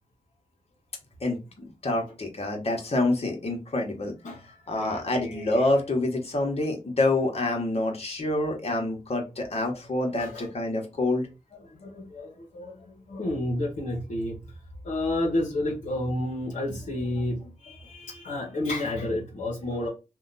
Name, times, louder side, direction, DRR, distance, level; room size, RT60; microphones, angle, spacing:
voice 1, 1.8-4.1 4.7-11.3, left 2 dB, 50° left, 1.2 m, -27 dB
voice 2, 4.2-5.7 10.1-10.5 11.5-14.4 14.8-19.9, left 1 dB, 65° left, 1.0 m, -31 dB
2.8 x 2.3 x 3.9 m
supercardioid pair, 40°, 14 cm